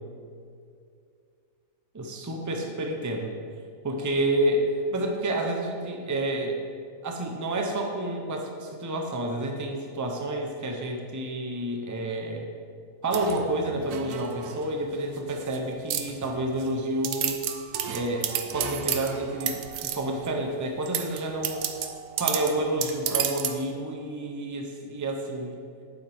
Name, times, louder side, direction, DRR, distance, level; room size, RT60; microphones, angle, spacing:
voice 1, 1.9-3.3 3.8-4.6 4.9-6.6 7.0-12.5 13.0-17.4 17.9-21.6 22.2-25.6, right 1 dB, 20° right, 2 dB, 0.4 m, -29 dB
sound 1, 13.1-14.7 15.2-15.6 15.9-16.7 17.0-20.3 20.8-23.6, right 9 dB, 80° right, 1.1 m, -32 dB
8.6 x 8.0 x 3.5 m, 2.4 s
omnidirectional pair, 1.6 m